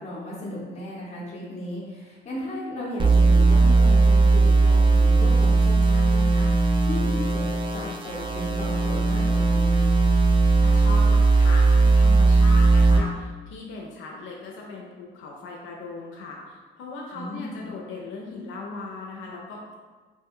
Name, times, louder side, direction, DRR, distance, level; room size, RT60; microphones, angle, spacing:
voice 1, 0.0-7.4 7.7-10.0 17.1-17.6, left 1 dB, 35° left, -6 dB, 0.8 m, -35 dB
sound 1, 3.0-13.0, right 3 dB, 25° right, 0.5 m, -18 dB
voice 2, 10.6-19.8, left 3 dB, 80° left, -2 dB, 0.5 m, -38 dB
3.0 x 2.2 x 3.5 m, 1.3 s
cardioid pair, 90°, 20 cm